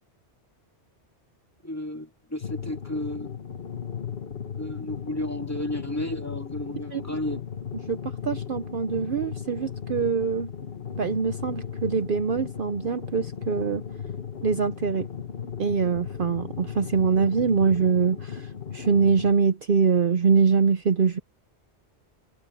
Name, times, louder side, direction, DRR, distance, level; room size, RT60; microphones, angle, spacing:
voice 1, 1.6-3.3 4.6-7.4, left 1 dB, 15° left, 2.4 m, -32 dB
sound 1, 2.4-19.3, left 7 dB, 60° left, 1.5 m, -36 dB
voice 2, 8.2-10.5 10.9-13.8 14.4-15.1 15.6-18.5 18.7-21.2, right 5 dB, 55° right, 0.9 m, -23 dB
omnidirectional pair, 1.2 m